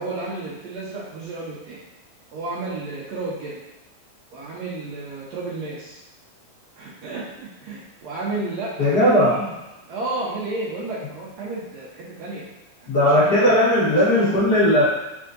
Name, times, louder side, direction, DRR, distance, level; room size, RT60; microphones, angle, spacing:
voice 1, 0.0-1.8 2.3-3.6 4.3-6.0 6.8-9.5 9.9-12.4 12.8-14.3, right 2 dB, 70° right, -6 dB, 1.7 m, -32 dB
voice 2, 8.8-9.5 12.9-14.8, equal, 85° left, -11 dB, 0.8 m, -17 dB
4.4 x 3.6 x 2.5 m, 0.98 s
omnidirectional pair, 3.7 m